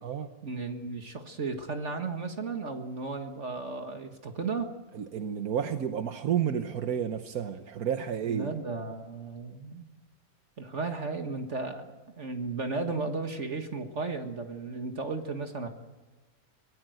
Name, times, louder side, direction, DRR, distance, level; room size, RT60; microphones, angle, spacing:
voice 1, 0.4-4.7 8.3-9.9 10.6-15.7, right 4 dB, 50° right, 5 dB, 2.0 m, -34 dB
voice 2, 4.9-8.5, right 8 dB, 75° right, 8 dB, 1.5 m, -31 dB
25.0 x 18.5 x 7.9 m, 1.2 s
omnidirectional pair, 1.6 m